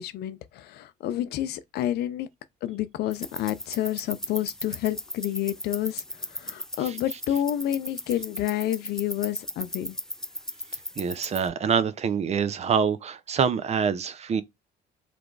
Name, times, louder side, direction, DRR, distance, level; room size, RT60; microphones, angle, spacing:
voice 1, 0.0-2.3 2.6-10.0, left 12 dB, 75° left, 0.5 m, -29 dB
sound 1, 3.1-11.5, left 1 dB, 5° left, 0.4 m, -37 dB
voice 2, 11.0-14.4, right 6 dB, 40° right, 0.6 m, -25 dB
3.4 x 2.9 x 3.9 m
cardioid pair, 110°, 17 cm